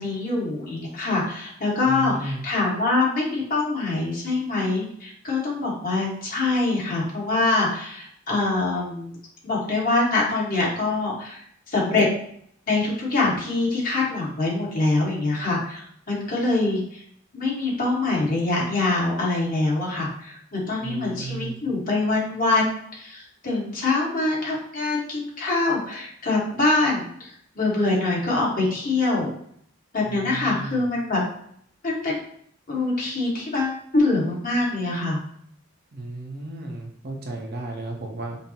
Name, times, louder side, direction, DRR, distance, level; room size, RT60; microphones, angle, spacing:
voice 1, 0.0-9.1 9.4-11.4 11.7-12.1 12.7-17.0 17.3-29.3 29.9-31.2 31.8-32.2 32.7-35.2, left 2 dB, 45° left, -4 dB, 1.4 m, -24 dB
voice 2, 1.8-2.4 20.8-21.6 30.0-30.9 35.9-38.4, right 2 dB, 55° right, 1 dB, 0.7 m, -34 dB
5.2 x 2.0 x 2.8 m, 0.66 s
head